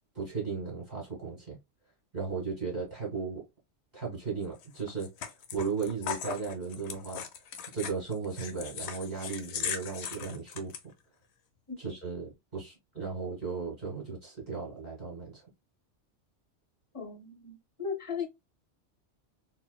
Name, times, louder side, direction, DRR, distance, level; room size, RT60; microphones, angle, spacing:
voice 1, 0.1-1.6 2.1-3.4 3.9-7.2 7.7-10.7 11.8-15.4, right 5 dB, 40° right, 1.6 m, -36 dB
sound 1, 4.6-10.8, left 8 dB, 70° left, 0.8 m, -38 dB
voice 2, 16.9-18.3, left 6 dB, 30° left, 0.9 m, -37 dB
3.9 x 2.3 x 2.2 m
omnidirectional pair, 1.2 m